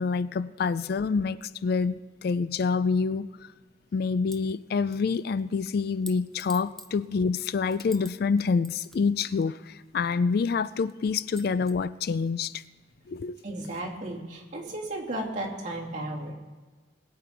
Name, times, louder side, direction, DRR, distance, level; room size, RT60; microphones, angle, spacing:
voice 1, 0.0-3.3 3.9-12.6 13.1-13.4, left 5 dB, 55° left, 17 dB, 0.3 m, -27 dB
sound 1, 4.3-4.5 4.9-8.1 8.4-10.3 10.9-11.0 11.3-11.7, left 1 dB, ahead, 0.7 m, -48 dB
voice 2, 13.4-16.3, right 1 dB, 40° right, -3 dB, 2.6 m, -34 dB
21.0 x 8.6 x 4.5 m, 1.3 s
head